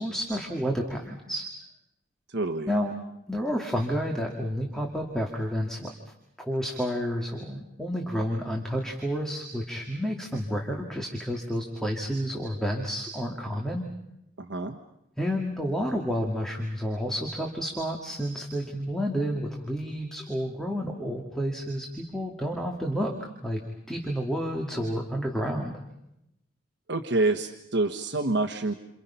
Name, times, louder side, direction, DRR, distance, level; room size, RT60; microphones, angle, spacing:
voice 1, 0.0-1.5 2.7-2.9 3.3-13.9 15.2-23.6 23.9-25.7, equal, ahead, 1 dB, 2.1 m, -30 dB
voice 2, 2.3-2.7 14.4-14.8 26.9-28.7, right 2 dB, 60° right, 5 dB, 1.3 m, -27 dB
29.0 x 27.5 x 5.7 m, 0.85 s
head